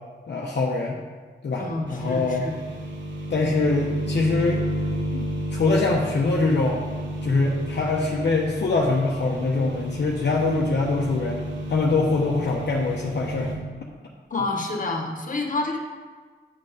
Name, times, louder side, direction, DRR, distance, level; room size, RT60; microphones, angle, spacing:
voice 1, 0.3-1.0 1.4-2.5 3.3-4.6 5.1-6.8 7.2-11.4 11.7-13.5 14.3-14.4, left 3 dB, 65° left, -2 dB, 0.9 m, -24 dB
voice 2, 1.6-2.6 14.3-15.8, left 2 dB, 45° left, 2 dB, 1.4 m, -28 dB
sound 1, 1.9-13.6, equal, 80° right, 1.1 m, -31 dB
8.6 x 4.4 x 4.9 m, 1.5 s
cardioid pair, 55°, 19 cm